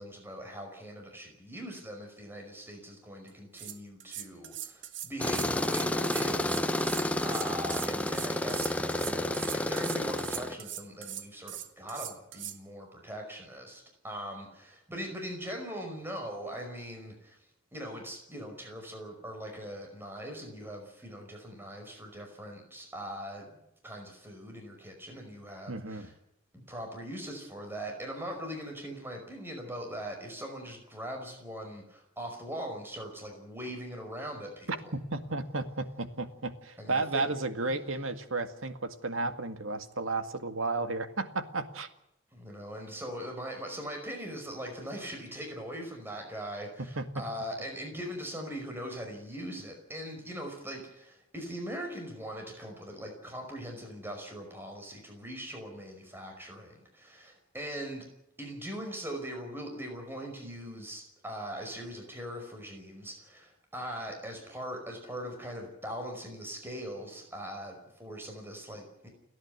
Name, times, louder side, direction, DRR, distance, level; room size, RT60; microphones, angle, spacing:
voice 1, 0.0-17.4 17.7-23.5 23.8-26.1 26.5-34.7 36.8-37.3 37.7-38.0 42.3-58.1 58.4-69.1, equal, 10° right, 2 dB, 5.3 m, -41 dB
sound 1, 3.3-3.4 3.5-12.6, right 11 dB, 65° right, 1.6 m, -41 dB
Tools, 5.2-10.6, left 1 dB, 5° left, 1.1 m, -30 dB
voice 2, 25.7-26.1 34.7-41.9 47.0-47.1, right 3 dB, 85° right, 9 dB, 2.0 m, -33 dB
30.0 x 11.0 x 9.6 m, 0.84 s
head